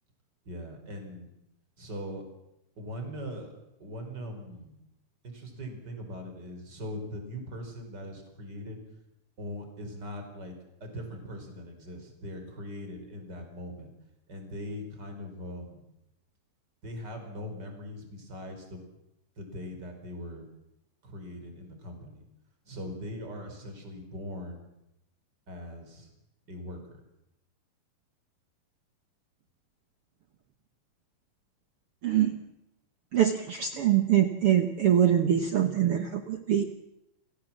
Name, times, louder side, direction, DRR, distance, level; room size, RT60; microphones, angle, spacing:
voice 1, 0.5-1.3 1.8-2.2 2.8-3.5 3.8-4.8 5.2-8.8 9.4-10.5 10.8-13.9 14.3-15.8 16.8-18.8 19.4-20.4 21.0-22.3 22.7-24.7 25.5-26.1 26.5-27.0, equal, 25° right, 4 dB, 5.2 m, -40 dB
voice 2, 32.0-32.4 33.1-36.6, right 10 dB, 80° right, 7 dB, 1.2 m, -24 dB
29.0 x 17.5 x 7.5 m, 0.87 s
omnidirectional pair, 4.5 m